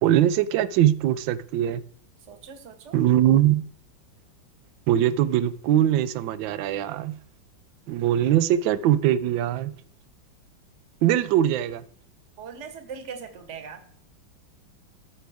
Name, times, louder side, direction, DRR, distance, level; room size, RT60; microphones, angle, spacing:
voice 1, 0.0-1.8 2.9-3.6 4.9-7.2 7.9-9.7 11.0-11.8, right 11 dB, 75° right, 1.3 m, -21 dB
voice 2, 2.3-3.0 12.4-13.8, right 6 dB, 40° right, 1.3 m, -40 dB
14.5 x 6.4 x 3.5 m
omnidirectional pair, 2.2 m